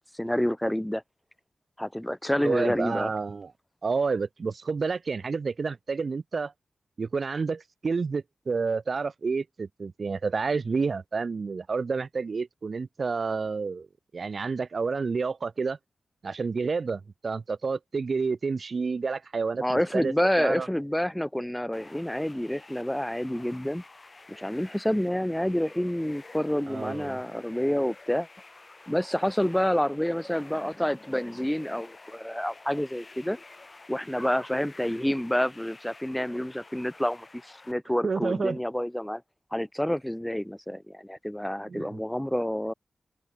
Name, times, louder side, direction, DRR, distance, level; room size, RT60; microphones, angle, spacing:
voice 1, 0.1-1.0 1.8-3.1 19.6-23.8 24.3-28.3 28.9-33.4 33.9-39.2 39.5-42.7, equal, 5° left, 0.6 m, -28 dB
voice 2, 2.4-3.5 3.8-6.5 7.0-13.9 14.1-15.8 16.2-20.7 26.7-27.2 38.0-38.6 41.7-42.0, right 4 dB, 60° right, 1.0 m, -29 dB
sound 1, 21.7-37.7, left 3 dB, 40° left, 5.9 m, -50 dB
cardioid pair, 65°, 0 cm